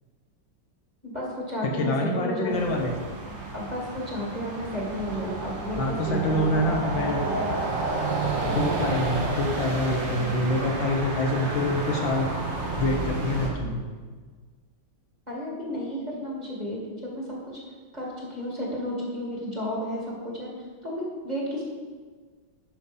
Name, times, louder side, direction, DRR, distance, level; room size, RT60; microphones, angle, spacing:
voice 1, 1.0-2.7 3.5-7.5 15.3-17.6 17.9-20.5 20.8-21.6, equal, 20° right, -4 dB, 2.2 m, -32 dB
voice 2, 1.6-3.0 5.8-7.2 8.5-12.3 12.8-13.8, left 1 dB, 70° left, 1 dB, 1.9 m, -26 dB
sound 1, 2.5-13.5, right 3 dB, 65° right, 2.4 m, -31 dB
11.5 x 5.8 x 5.4 m, 1.5 s
omnidirectional pair, 2.2 m